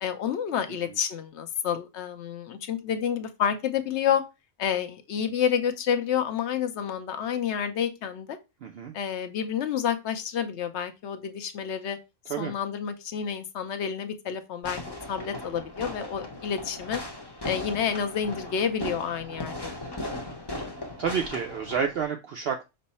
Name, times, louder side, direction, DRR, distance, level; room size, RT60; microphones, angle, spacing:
voice 1, 0.0-4.2 4.6-8.4 8.9-12.0 12.4-17.0 17.4-20.1, left 8 dB, 65° left, 8 dB, 0.9 m, -29 dB
voice 2, 8.6-8.9 12.3-12.5 21.0-22.6, right 7 dB, 60° right, 4 dB, 0.7 m, -29 dB
Fireworks, 14.6-22.0, left 1 dB, 25° left, 0.7 m, -37 dB
5.3 x 2.0 x 4.0 m, 0.25 s
omnidirectional pair, 1.3 m